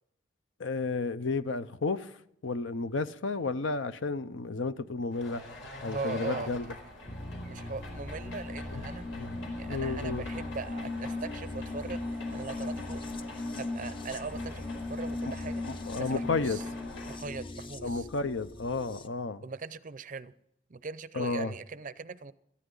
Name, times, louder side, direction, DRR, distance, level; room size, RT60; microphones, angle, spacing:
voice 1, 0.6-2.1 2.4-5.4 5.8-6.7 8.7-8.8 9.1-9.3 9.7-10.3 15.3-15.4 15.6-16.6 17.8-19.4 21.1-21.5, left 3 dB, 70° left, 0.7 m, -32 dB
sound 1, 5.1-17.2, left 1 dB, 90° left, 4.5 m, -45 dB
voice 2, 5.9-6.7 7.1-7.2 7.4-9.1 9.6-13.0 13.6-15.6 16.0-16.6 17.1-18.1 19.4-20.3 20.7-22.3, right 4 dB, 40° right, 0.6 m, -40 dB
sound 2, 7.1-19.1, left 2 dB, 25° left, 0.6 m, -38 dB
17.5 x 14.0 x 3.9 m
head